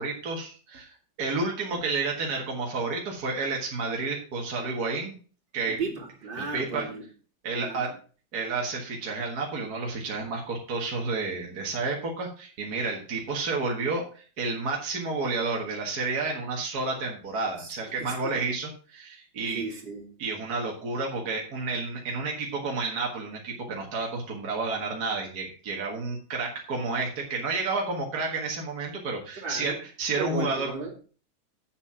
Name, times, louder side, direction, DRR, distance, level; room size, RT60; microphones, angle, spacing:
voice 1, 0.0-5.2 5.5-5.8 6.4-6.8 7.4-7.9 8.3-19.6 20.2-29.7 30.0-30.7, right 3 dB, 50° right, -1 dB, 2.1 m, -30 dB
voice 2, 5.7-7.0 7.5-7.8 17.6-18.5 19.5-20.1 29.4-29.8 30.1-30.9, right 3 dB, 70° right, -1 dB, 3.3 m, -35 dB
8.2 x 7.4 x 5.8 m, 0.39 s
omnidirectional pair, 2.2 m